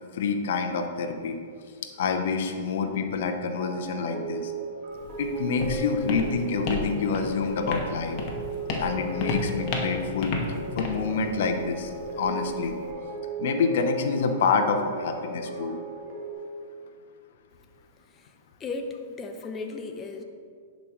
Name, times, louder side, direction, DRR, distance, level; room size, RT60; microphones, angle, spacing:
voice 1, 0.1-1.4 2.0-4.5 5.2-8.2 8.8-10.3 10.7-12.7 13.4-15.8, left 5 dB, 65° left, 6 dB, 0.8 m, -27 dB
sound 1, 3.5-16.3, right 3 dB, 45° right, 2.0 m, -36 dB
Walk footsteps, 4.9-12.9, left 3 dB, 40° left, 1.2 m, -33 dB
voice 2, 18.6-20.2, left 3 dB, 20° left, 5 dB, 0.8 m, -35 dB
10.5 x 5.1 x 3.1 m, 2.1 s
hypercardioid pair, 120°, 0 cm